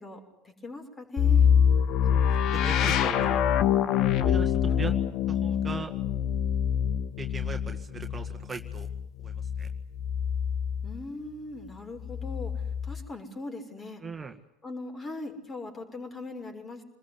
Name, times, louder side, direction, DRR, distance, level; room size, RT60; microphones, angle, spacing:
voice 1, 0.0-1.5 10.8-14.0 14.6-16.8, left 2 dB, 25° left, 6 dB, 6.2 m, -40 dB
sound 1, 1.2-11.0 12.0-13.0, left 8 dB, 50° left, 1.5 m, -25 dB
voice 2, 2.1-3.4 4.2-4.9 5.3-5.9 7.2-8.9 9.2-9.7 14.0-14.3, right 5 dB, 20° right, 5 dB, 1.9 m, -39 dB
27.5 x 21.0 x 9.9 m, 0.78 s
hypercardioid pair, 75°, 0 cm